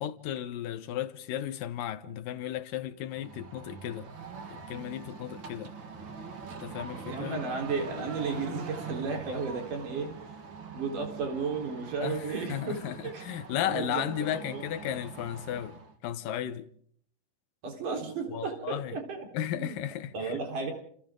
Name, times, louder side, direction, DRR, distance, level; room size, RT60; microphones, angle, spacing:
voice 1, 0.0-4.1 4.5-5.7 6.6-7.4 12.0-12.2 12.5-16.7 18.3-19.0 19.3-20.3, left 11 dB, 85° left, 2.8 m, -35 dB
sound 1, 3.1-15.9, right 4 dB, 40° right, 2.3 m, -43 dB
voice 2, 7.1-10.1 10.7-13.2 13.6-14.1 14.3-14.6 17.6-19.8 20.1-20.7, right 4 dB, 70° right, 5.7 m, -34 dB
29.5 x 28.0 x 3.8 m
omnidirectional pair, 3.8 m